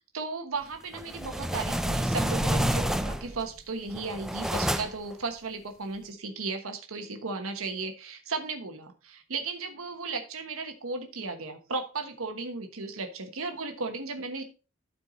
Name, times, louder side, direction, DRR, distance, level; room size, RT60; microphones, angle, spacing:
voice 1, 0.1-14.4, right 3 dB, 85° right, 5 dB, 1.3 m, -35 dB
sound 1, 0.9-3.4 3.9-5.1, equal, ahead, 0.4 m, -29 dB
12.5 x 4.6 x 4.0 m, 0.33 s
head